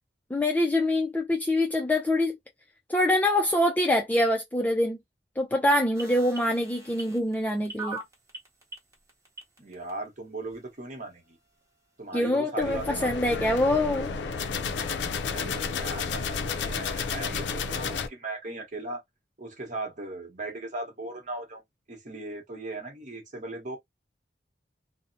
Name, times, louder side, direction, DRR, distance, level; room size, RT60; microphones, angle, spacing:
voice 1, 0.3-2.4 2.9-5.0 5.4-8.0 12.1-14.1, left 1 dB, 10° left, 0.3 m, -25 dB
sound 1, 5.9-9.9 10.5-10.6, right 3 dB, 20° right, 0.9 m, -40 dB
voice 2, 9.6-11.4 12.0-13.5 15.3-19.0 19.4-21.6 21.9-23.8, right 2 dB, 45° right, 1.0 m, -38 dB
sound 2, 12.6-18.1, left 5 dB, 85° left, 0.4 m, -31 dB
2.7 x 2.0 x 2.6 m
head